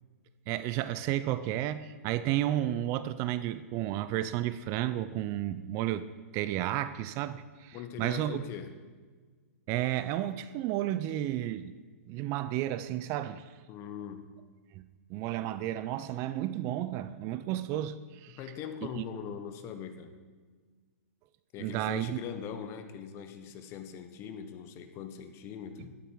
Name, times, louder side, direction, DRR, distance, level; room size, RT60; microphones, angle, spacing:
voice 1, 0.5-6.1 6.3-8.4 9.7-11.7 12.1-13.5 14.7-14.8 15.1-18.4 19.0-19.1 21.6-22.2, right 13 dB, 35° right, 14 dB, 0.5 m, -32 dB
voice 2, 7.7-8.7 13.7-14.3 18.3-20.1 21.5-26.0, left 8 dB, 30° left, 8 dB, 1.2 m, -41 dB
12.5 x 12.0 x 4.7 m, 1.4 s
hypercardioid pair, 130°, 8 cm